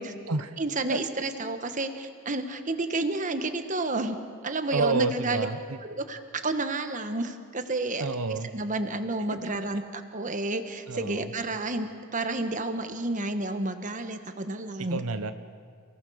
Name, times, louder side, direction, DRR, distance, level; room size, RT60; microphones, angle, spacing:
voice 1, 0.6-4.2 4.4-5.5 5.9-15.0, right 2 dB, 35° right, 8 dB, 1.3 m, -31 dB
voice 2, 4.7-5.8 8.0-8.5 10.9-11.3 14.9-15.3, right 3 dB, 80° right, 10 dB, 0.9 m, -29 dB
28.5 x 18.5 x 6.4 m, 2.2 s
head